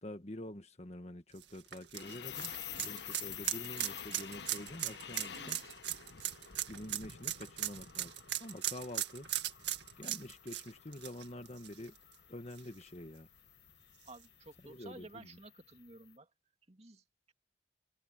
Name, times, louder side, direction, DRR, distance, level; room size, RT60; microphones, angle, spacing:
voice 1, 0.0-2.5 2.8-5.6 6.7-8.1 8.4-9.3 10.0-11.9 12.3-13.3 14.6-15.3, left 1 dB, 40° left, 1.6 m, -47 dB
sound 1, 1.4-12.1 12.5-12.6 14.1-14.2, right 12 dB, 80° right, 2.0 m, -38 dB
sound 2, 1.9-16.0, left 9 dB, 75° left, 1.2 m, -49 dB
voice 2, 5.3-5.8 6.7-6.9 14.0-16.3 16.7-17.3, right 2 dB, 35° right, 2.3 m, -54 dB
head